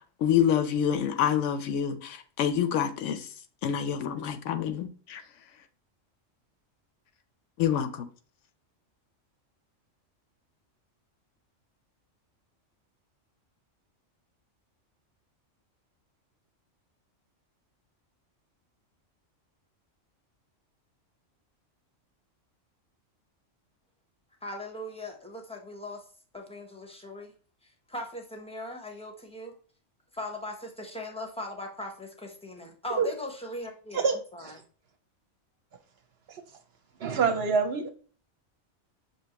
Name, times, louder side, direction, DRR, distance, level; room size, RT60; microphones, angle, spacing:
voice 1, 0.2-3.3 3.6-5.2 7.6-8.1, left 9 dB, 75° left, 0.9 m, -27 dB
voice 2, 24.4-26.0 26.3-27.3 27.9-29.5 30.1-34.5, left 1 dB, 5° left, 0.5 m, -39 dB
voice 3, 33.9-34.6 36.3-36.4 37.0-37.9, right 5 dB, 60° right, 0.8 m, -27 dB
6.2 x 2.8 x 2.8 m
omnidirectional pair, 1.3 m